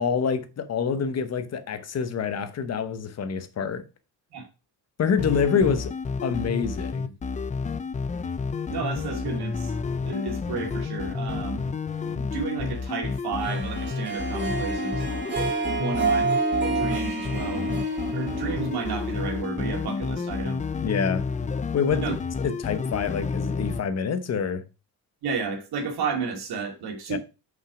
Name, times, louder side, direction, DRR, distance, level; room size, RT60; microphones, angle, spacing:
voice 1, 0.0-3.8 5.0-5.9 6.2-7.1 20.8-21.3 21.7-22.0 22.4-24.6 27.1-27.2, left 6 dB, 40° left, 1.0 m, -26 dB
sound 1, 5.2-23.8, left 4 dB, 20° left, 0.4 m, -30 dB
voice 2, 8.7-9.7 10.0-11.6 12.1-15.1 15.7-16.4 16.6-17.7 18.1-20.6 21.9-22.1 25.2-27.2, right 4 dB, 65° right, 2.3 m, -32 dB
Harp, 13.4-19.7, right 3 dB, 25° right, 2.7 m, -29 dB
6.0 x 5.5 x 4.8 m
cardioid pair, 155°, 41 cm